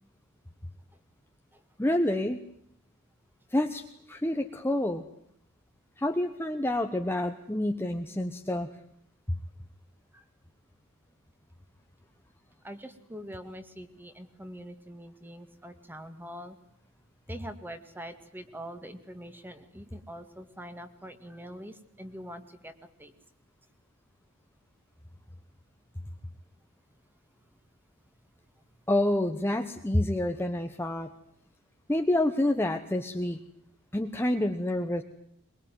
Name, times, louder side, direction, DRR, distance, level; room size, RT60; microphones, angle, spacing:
voice 1, 1.8-2.4 3.5-3.8 4.1-5.0 6.0-8.7 9.3-9.4 28.9-31.1 31.9-33.4 33.9-35.0, left 1 dB, 10° left, 5 dB, 1.1 m, -28 dB
voice 2, 12.6-16.6 17.3-23.1 28.5-28.6, equal, 10° right, 8 dB, 2.1 m, -44 dB
23.0 x 22.5 x 9.4 m, 0.70 s
head